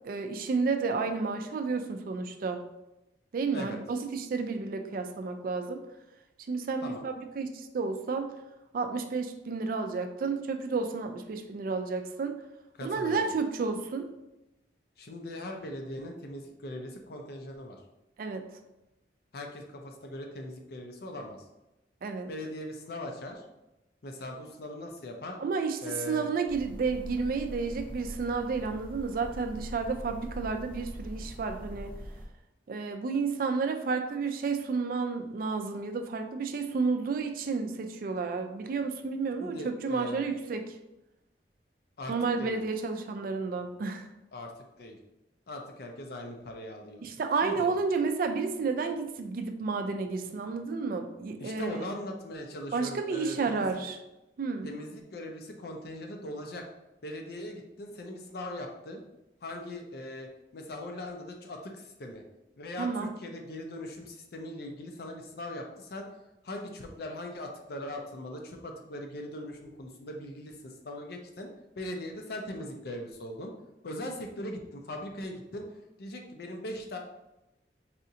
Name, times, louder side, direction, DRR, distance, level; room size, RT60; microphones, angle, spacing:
voice 1, 0.0-2.6 3.3-5.8 6.5-8.3 8.7-12.4 12.8-14.1 18.2-18.4 22.0-22.3 25.4-31.9 32.7-40.7 42.1-44.1 47.0-52.0 52.7-54.0 54.4-54.7 62.8-63.1, right 4 dB, 50° right, 6 dB, 0.3 m, -31 dB
voice 2, 12.7-13.2 15.0-17.8 19.3-21.4 22.3-23.4 24.0-25.4 25.8-26.3 39.4-40.3 42.0-42.6 44.3-44.5 44.8-45.0 45.5-47.7 51.4-53.7 54.6-56.6 57.0-59.0 59.4-62.2 62.6-66.2 66.4-71.5 71.8-73.5 73.8-77.0, left 1 dB, 60° left, 3 dB, 0.5 m, -40 dB
sound 1, 26.5-32.3, equal, 10° left, 0.7 m, -42 dB
4.1 x 2.5 x 2.7 m, 0.94 s
head